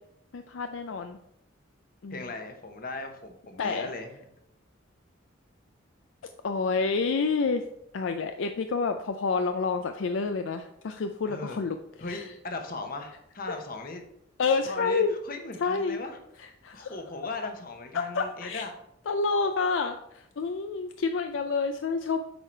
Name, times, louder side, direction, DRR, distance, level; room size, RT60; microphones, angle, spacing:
voice 1, 0.3-1.2 2.0-2.3 3.6-3.9 6.4-7.6 7.9-11.8 12.1-12.2 14.4-15.1 15.6-16.0 16.6-16.9 17.9-18.7 19.1-22.2, left 4 dB, 70° left, 7 dB, 0.4 m, -28 dB
voice 2, 2.1-4.2 11.3-11.6 12.0-14.0 14.5-16.5 16.7-18.7, left 2 dB, 45° left, 5 dB, 1.0 m, -38 dB
8.0 x 4.9 x 4.4 m, 0.80 s
head